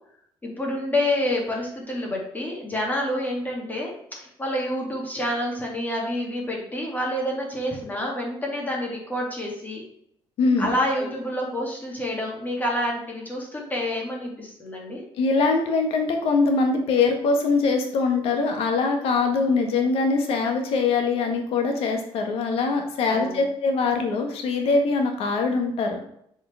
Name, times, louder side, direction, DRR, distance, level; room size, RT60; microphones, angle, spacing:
voice 1, 0.4-9.8 10.6-15.0 23.1-23.4, left 1 dB, 15° left, -2 dB, 2.5 m, -28 dB
voice 2, 10.4-10.7 11.0-11.1 15.2-26.0, left 4 dB, 75° left, 4 dB, 1.5 m, -23 dB
8.1 x 5.0 x 3.5 m, 0.71 s
cardioid pair, 110°, 10 cm